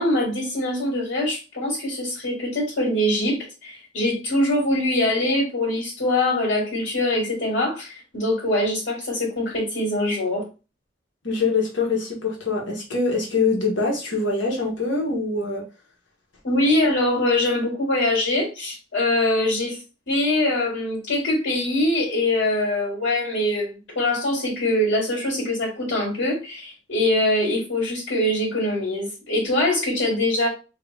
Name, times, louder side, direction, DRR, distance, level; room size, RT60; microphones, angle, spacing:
voice 1, 0.0-10.5 16.4-19.8 20.1-30.5, left 1 dB, 75° left, 1.8 m, -23 dB
voice 2, 11.2-15.6, left 3 dB, 90° left, 1.3 m, -24 dB
3.0 x 2.8 x 3.2 m
head